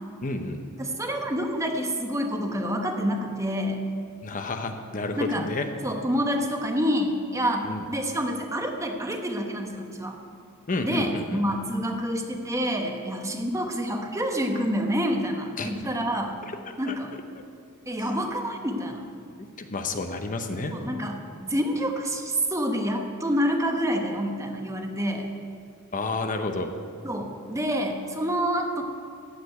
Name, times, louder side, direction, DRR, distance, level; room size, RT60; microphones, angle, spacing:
voice 1, 0.2-0.6 4.2-5.7 7.6-7.8 10.7-11.4 15.6-15.7 16.4-16.5 16.9-17.0 18.0-18.2 19.4-20.7 25.9-26.7, left 2 dB, 40° left, 6 dB, 0.8 m, -30 dB
voice 2, 0.8-3.8 5.2-5.5 5.8-10.2 10.8-16.4 16.8-17.1 17.9-19.0 20.7-21.1 21.4-25.3 27.0-28.8, equal, 15° right, 3 dB, 1.1 m, -27 dB
14.5 x 5.1 x 9.2 m, 2.2 s
head